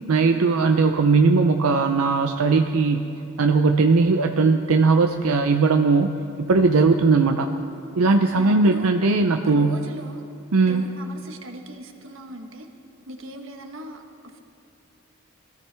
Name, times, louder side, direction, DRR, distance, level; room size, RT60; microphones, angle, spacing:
voice 1, 0.1-3.0 3.4-6.1 6.4-7.5 8.0-9.8 10.5-10.8, right 4 dB, 90° right, 5 dB, 0.6 m, -19 dB
voice 2, 8.3-9.0 9.4-10.3 10.7-12.7 13.1-14.4, right 1 dB, 65° right, 4 dB, 1.2 m, -38 dB
21.5 x 14.0 x 3.4 m, 2.5 s
head